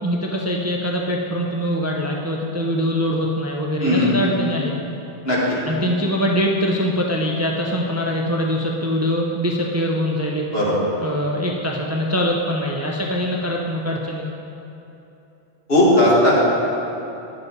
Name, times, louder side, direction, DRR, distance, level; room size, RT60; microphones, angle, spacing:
voice 1, 0.0-4.7 5.6-10.5 11.0-14.3, equal, 20° right, -1 dB, 0.5 m, -23 dB
voice 2, 3.8-4.2 5.2-5.6 10.5-10.7 15.7-16.3, left 1 dB, 70° left, -7 dB, 2.5 m, -16 dB
10.5 x 7.3 x 4.0 m, 2.9 s
omnidirectional pair, 1.1 m